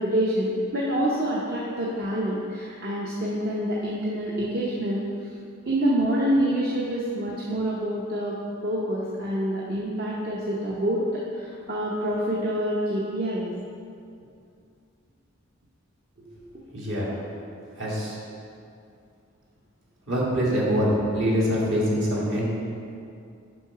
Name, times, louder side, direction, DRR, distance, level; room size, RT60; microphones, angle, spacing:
voice 1, 0.0-5.3 5.7-8.4 8.6-13.5, right 1 dB, 50° right, -5 dB, 0.7 m, -27 dB
voice 2, 16.7-17.1 17.8-18.2 20.1-22.5, equal, 65° right, -5 dB, 1.8 m, -24 dB
6.1 x 5.3 x 4.8 m, 2.5 s
head